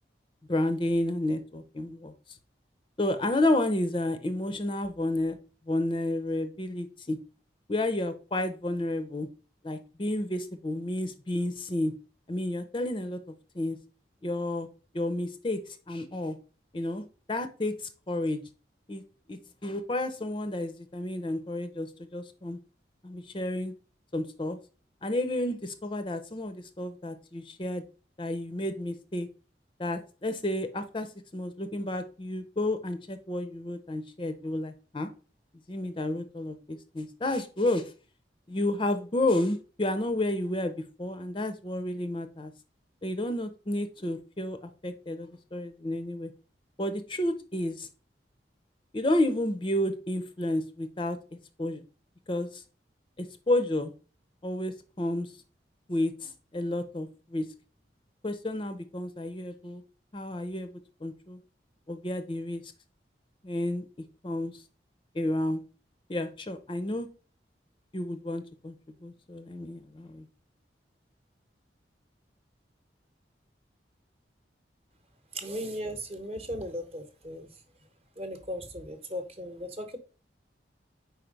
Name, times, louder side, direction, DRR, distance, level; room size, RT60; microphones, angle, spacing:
voice 1, 0.5-2.1 3.0-5.4 5.7-7.2 7.7-9.3 9.6-11.9 12.3-13.2 13.5-13.8 14.2-14.7 14.9-16.4 16.7-18.4 18.9-19.0 19.3-22.6 23.0-23.7 24.1-24.6 25.0-27.8 28.2-29.3 29.8-35.1 35.7-37.9 38.5-40.7 41.0-42.5 43.0-46.3 46.8-47.9 48.9-51.8 52.3-52.6 53.2-53.9 54.4-55.3 55.9-57.5 58.2-59.8 60.1-60.7 61.0-61.4 61.9-62.6 63.4-63.8 64.2-64.6 65.1-65.6 66.1-67.1 67.9-68.7 69.0-70.2, left 1 dB, 30° left, 9 dB, 0.5 m, -31 dB
voice 2, 75.3-77.6 78.2-80.0, equal, 35° right, 7 dB, 0.9 m, -37 dB
4.5 x 4.5 x 5.1 m, 0.37 s
head